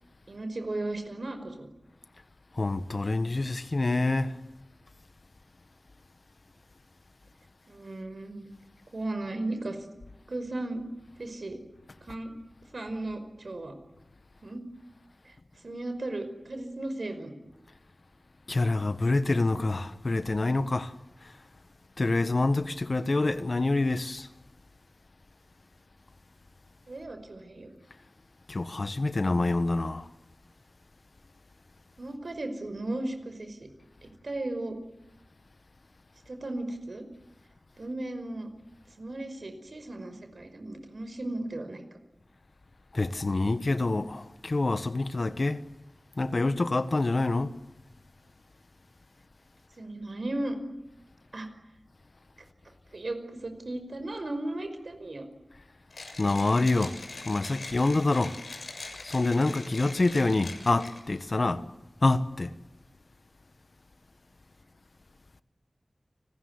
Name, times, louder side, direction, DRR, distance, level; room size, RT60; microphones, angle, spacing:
voice 1, 0.3-1.7 7.7-8.4 8.9-9.8 10.3-10.9 11.2-11.6 12.0-12.3 12.7-13.8 14.4-14.6 15.2-15.4 15.6-17.3 26.9-27.7 32.0-33.7 34.2-34.8 36.3-37.1 37.8-38.5 39.0-41.8 49.8-50.6 51.3-51.5 52.9-55.3, right 2 dB, 70° right, 5.4 m, -35 dB
voice 2, 2.6-4.4 18.5-20.9 22.0-24.3 28.5-30.1 42.9-45.6 46.2-47.5 56.2-57.0 57.2-58.4 59.0-61.6 62.0-62.5, left 2 dB, 55° left, 1.5 m, -26 dB
Mechanisms, 55.9-61.2, left 3 dB, 85° left, 6.7 m, -42 dB
30.0 x 20.5 x 9.8 m
wide cardioid pair, 75°, 0 cm